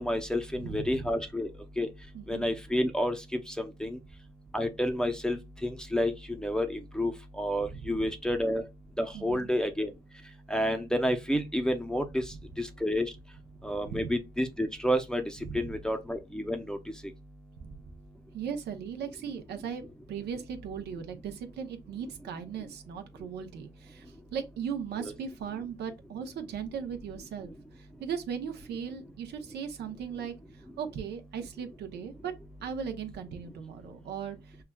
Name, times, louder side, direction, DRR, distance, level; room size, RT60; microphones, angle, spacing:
voice 1, 0.0-1.5 1.8-1.9 2.3-4.0 4.5-8.6 9.0-9.9 10.5-12.2 12.6-13.1 13.6-15.2 15.5-16.8 25.0-25.1, equal, 5° left, 0.6 m, -30 dB
voice 2, 0.6-1.1 2.1-2.5 7.7-8.0 9.1-9.5 13.5-14.1 15.4-15.7 17.6-17.9 18.3-19.8 20.1-32.3 32.6-34.6, right 7 dB, 75° right, 0.7 m, -38 dB
5.6 x 2.3 x 2.2 m
cardioid pair, 80°, 17 cm